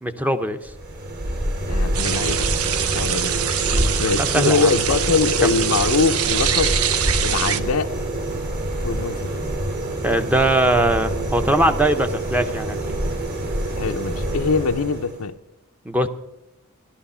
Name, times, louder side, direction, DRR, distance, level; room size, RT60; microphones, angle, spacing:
voice 1, 0.0-0.6 3.7-4.7 5.4-5.5 10.0-12.8 15.9-16.1, right 1 dB, 5° right, 8 dB, 0.7 m, -21 dB
sound 1, 0.6-15.3, right 1 dB, 50° right, 2.7 m, -26 dB
voice 2, 1.7-2.5 2.9-3.3 4.0-6.7 7.2-7.9 8.8-9.3 13.7-15.3, left 4 dB, 85° left, 9 dB, 0.6 m, -22 dB
sound 2, 1.9-7.6, right 9 dB, 85° right, 0.7 m, -24 dB
14.5 x 12.0 x 5.6 m, 0.91 s
head